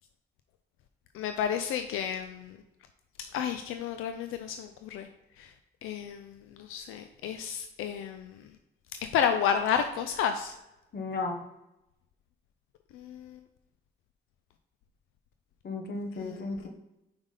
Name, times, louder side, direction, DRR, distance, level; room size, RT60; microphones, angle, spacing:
voice 1, 1.2-2.3 3.3-5.1 5.8-6.2 6.7-8.2 9.1-10.5 13.0-13.2 16.2-16.4, left 8 dB, 90° left, 7 dB, 0.5 m, -30 dB
voice 2, 10.9-11.4 15.6-16.7, left 3 dB, 50° left, 4 dB, 1.1 m, -34 dB
5.1 x 3.5 x 5.5 m, 0.92 s
cardioid pair, 70°, 21 cm